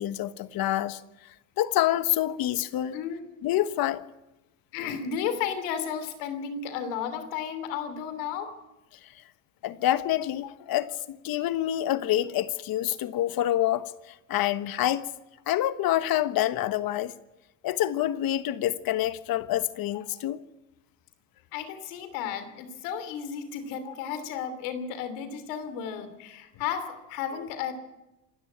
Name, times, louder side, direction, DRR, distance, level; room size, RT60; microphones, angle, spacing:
voice 1, 0.0-3.0 3.4-4.1 9.0-9.1 9.6-15.1 15.5-17.1 17.6-20.4, left 13 dB, 60° left, 1.3 m, -27 dB
voice 2, 2.9-3.3 4.7-8.5 20.1-20.2 21.5-27.7, left 8 dB, 90° left, 3.1 m, -33 dB
27.0 x 12.5 x 8.6 m
supercardioid pair, 85°, 39 cm